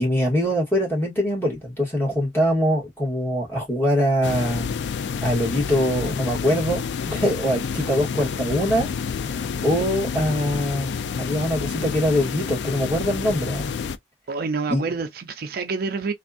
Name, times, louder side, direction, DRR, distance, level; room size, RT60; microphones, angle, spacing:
voice 1, 0.0-4.8 5.2-8.9 9.3-13.7 14.7-14.8, equal, 15° left, 1.8 m, -23 dB
sound 1, 4.2-14.0, left 6 dB, 70° left, 0.4 m, -29 dB
voice 2, 14.3-16.1, right 4 dB, 55° right, 0.5 m, -27 dB
3.4 x 2.4 x 2.5 m
head